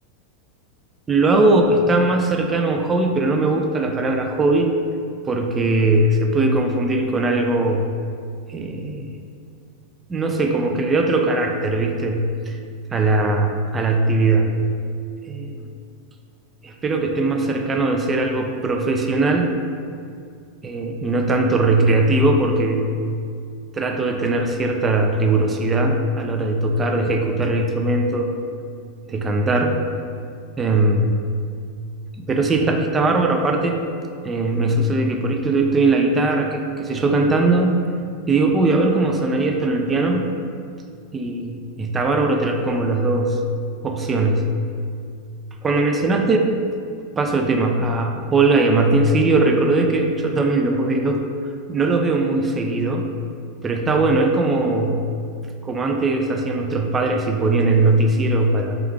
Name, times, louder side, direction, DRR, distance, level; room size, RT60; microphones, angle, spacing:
voice 1, 1.1-4.7 5.3-7.9 8.5-9.1 10.1-12.6 12.9-14.6 15.3-15.6 16.6-19.5 20.6-23.0 23.7-28.3 29.1-29.8 30.6-31.1 32.2-33.8 34.2-37.8 38.3-40.3 41.1-43.4 43.8-44.5 45.6-46.5 47.2-51.2 51.7-53.1 53.6-55.1 55.6-58.8, right 2 dB, 20° right, 3 dB, 0.4 m, -20 dB
3.5 x 3.3 x 3.6 m, 2.3 s
figure-of-eight pair, 90°, 0 cm